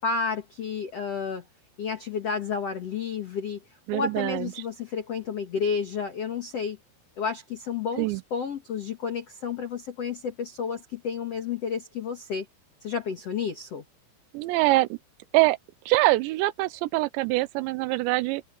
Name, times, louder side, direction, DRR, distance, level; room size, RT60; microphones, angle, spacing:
voice 1, 0.0-1.4 1.8-3.6 3.9-6.8 7.2-12.5 12.8-13.8, left 6 dB, 55° left, 1.8 m, -31 dB
voice 2, 3.9-4.5 8.0-8.2 14.3-15.0 15.3-15.6 15.9-18.4, right 20 dB, 80° right, 2.8 m, -24 dB
omnidirectional pair, 5.3 m